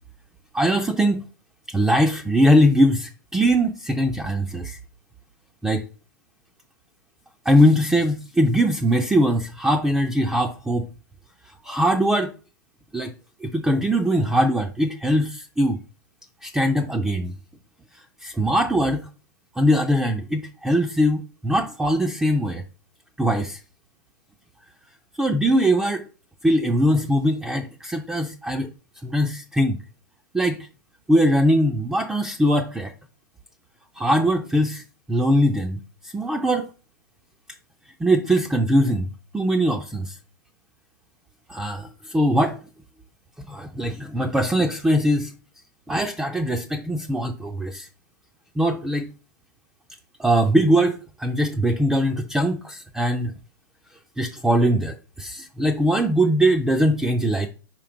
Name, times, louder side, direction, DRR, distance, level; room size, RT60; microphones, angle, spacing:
voice 1, 0.5-1.2 1.7-4.8 5.6-5.9 7.5-10.9 11.6-12.3 12.9-13.1 13.4-15.8 16.4-17.4 18.2-19.1 19.6-22.6 23.2-23.6 25.2-26.1 26.4-28.7 29.0-29.8 30.3-30.7 31.1-32.9 34.0-34.8 35.1-35.8 36.0-36.7 38.0-39.1 39.3-40.2 41.5-42.6 43.5-45.3 45.9-47.9 48.6-49.1 50.2-53.3 54.2-57.5, equal, 5° right, 3 dB, 0.4 m, -21 dB
4.8 x 4.5 x 5.0 m, 0.36 s
hypercardioid pair, 130°, 11 cm